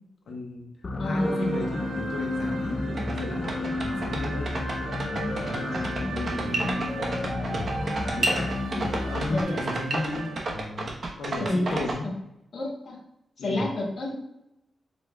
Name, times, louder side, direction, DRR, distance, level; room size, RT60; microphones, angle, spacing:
voice 1, 0.3-0.7 1.0-4.5 5.0-5.7 6.1-7.0 7.3-7.5 8.0-12.1 13.4-13.6, left 2 dB, 80° left, 0 dB, 1.1 m, -35 dB
sound 1, 0.8-9.4, left 2 dB, 35° left, 0.4 m, -32 dB
voice 2, 1.0-1.5 9.3-9.6 11.4-11.8 12.5-13.0 13.4-14.1, left 1 dB, 65° left, -3 dB, 1.6 m, -28 dB
sound 2, 1.2-10.4, right 3 dB, 85° right, 0.8 m, -37 dB
sound 3, 2.7-2.8 3.0-12.0, right 2 dB, 50° right, 1.0 m, -30 dB
6.8 x 3.2 x 2.3 m, 0.84 s
cardioid pair, 100°, 0 cm